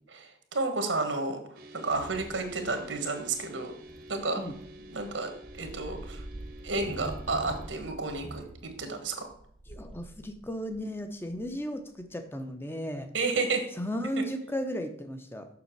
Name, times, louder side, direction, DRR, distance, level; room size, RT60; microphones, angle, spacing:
voice 1, 0.1-3.7 4.1-4.4 4.9-6.2 6.6-9.3 13.1-13.7, right 3 dB, 85° right, 6 dB, 1.5 m, -31 dB
sound 1, 1.5-7.7, right 1 dB, 50° right, 0.9 m, -49 dB
sound 2, 1.9-12.1, right 1 dB, 25° right, 0.5 m, -46 dB
voice 2, 9.7-13.1 13.8-15.5, equal, 10° left, 7 dB, 0.7 m, -35 dB
6.9 x 6.0 x 4.6 m, 0.65 s
head